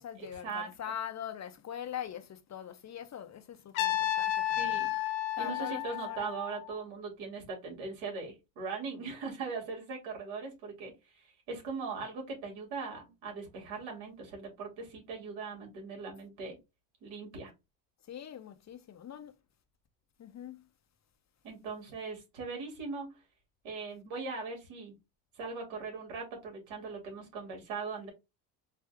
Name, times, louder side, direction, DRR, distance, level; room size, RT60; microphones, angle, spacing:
voice 1, 0.0-4.8 5.4-6.3 18.0-19.4 20.2-20.7, left 9 dB, 35° left, 0.7 m, -42 dB
Trumpet, 3.7-6.7, left 13 dB, 80° left, 1.0 m, -32 dB
voice 2, 4.6-4.9 5.4-16.6 17.0-17.5 21.4-23.1 23.6-24.9 25.4-28.1, right 4 dB, 70° right, 2.9 m, -40 dB
4.7 x 2.7 x 3.4 m
cardioid pair, 105°, 47 cm